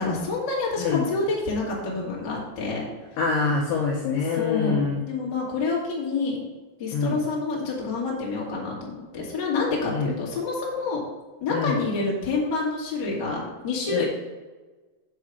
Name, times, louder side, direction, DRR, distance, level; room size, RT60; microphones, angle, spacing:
voice 1, 0.0-2.8 4.3-6.4 6.8-11.0 11.4-14.0, left 3 dB, 55° left, -4 dB, 1.2 m, -28 dB
voice 2, 3.2-5.0 6.9-7.1 9.9-10.1 11.5-11.8 13.9-14.0, left 5 dB, 75° left, -2 dB, 2.4 m, -25 dB
7.2 x 4.8 x 6.3 m, 1.3 s
omnidirectional pair, 5.6 m